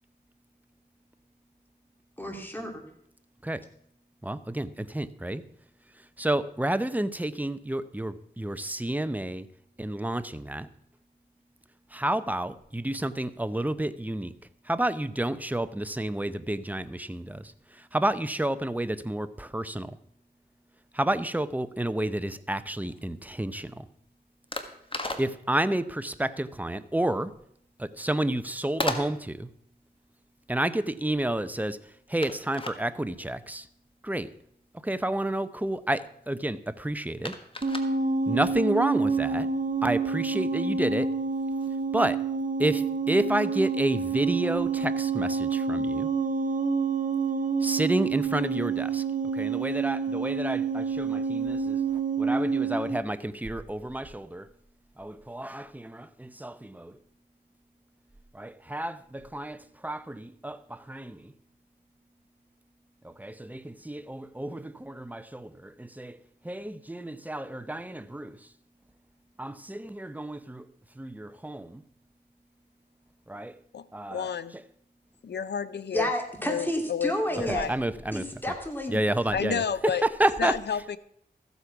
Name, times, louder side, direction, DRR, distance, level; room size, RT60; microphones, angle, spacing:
voice 1, 2.2-2.8 75.9-77.7 78.1-79.0, equal, 10° left, 3 dB, 2.8 m, -30 dB
voice 2, 4.2-5.4 6.2-9.5 9.8-10.7 11.9-14.3 14.7-20.0 20.9-23.9 25.2-27.3 27.8-29.5 30.5-31.8 32.1-33.7 34.0-34.3 34.8-37.4 38.3-39.5 39.8-41.1 41.9-42.2 42.6-46.1 47.6-49.0 49.3-51.8 52.2-54.5 55.0-57.0 58.3-61.3 63.0-66.2 66.4-68.4 69.4-70.7 71.0-71.8 73.3-73.6 73.9-74.3 77.5-78.2 78.9-80.5, right 1 dB, 10° right, 13 dB, 0.7 m, -30 dB
sound 1, 22.2-41.9, left 2 dB, 30° left, 1.5 m, -41 dB
sound 2, 37.6-53.0, right 5 dB, 50° right, 0.9 m, -28 dB
voice 3, 74.1-74.5 75.2-76.1 76.4-77.7 79.3-80.0 80.4-81.0, left 7 dB, 75° left, 15 dB, 0.6 m, -30 dB
14.0 x 8.2 x 5.9 m, 0.70 s
wide cardioid pair, 65°, 17 cm